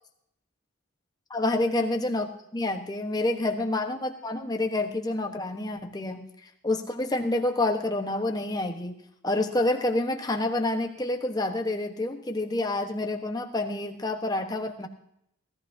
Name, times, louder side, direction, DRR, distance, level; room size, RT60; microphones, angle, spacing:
voice 1, 1.3-9.0 9.2-14.9, left 2 dB, 20° left, 4 dB, 1.1 m, -28 dB
17.0 x 14.0 x 2.8 m, 0.74 s
head